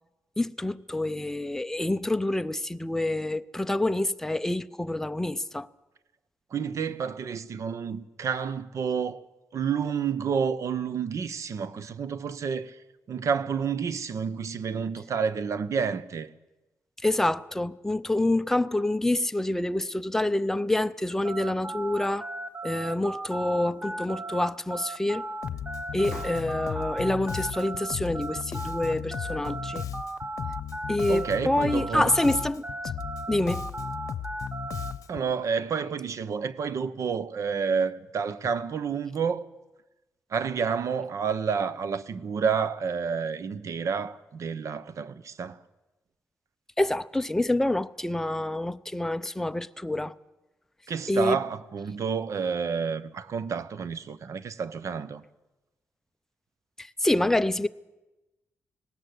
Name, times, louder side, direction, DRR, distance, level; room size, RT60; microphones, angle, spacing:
voice 1, 0.4-5.7 17.0-22.3 22.6-25.3 25.9-29.9 30.9-32.6 33.3-33.7 46.8-50.2 51.1-51.4 56.8-57.7, left 1 dB, 5° left, 0.6 m, -27 dB
voice 2, 6.5-9.2 9.5-12.8 13.1-16.3 31.1-32.1 35.1-39.4 40.3-45.6 50.9-55.2, right 6 dB, 65° right, 1.0 m, -29 dB
sound 1, 21.2-31.4 31.7-34.9, right 2 dB, 25° right, 1.1 m, -36 dB
Bass guitar, 25.4-35.3, left 9 dB, 75° left, 0.8 m, -36 dB
19.0 x 17.5 x 8.0 m
wide cardioid pair, 115°, 6 cm